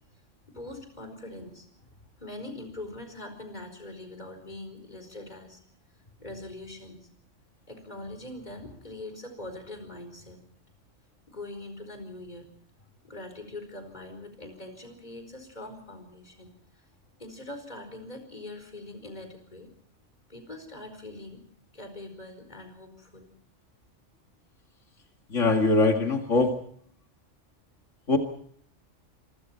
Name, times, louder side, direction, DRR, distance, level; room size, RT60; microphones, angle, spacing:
voice 1, 0.5-5.6 6.2-7.1 7.7-10.4 11.3-12.5 13.0-16.9 17.2-19.7 20.3-21.4 21.7-23.3, left 2 dB, 35° left, 7 dB, 4.9 m, -42 dB
voice 2, 25.3-26.6 28.1-28.2, left 3 dB, 90° left, 3 dB, 2.5 m, -22 dB
27.0 x 24.0 x 4.5 m, 0.62 s
omnidirectional pair, 1.2 m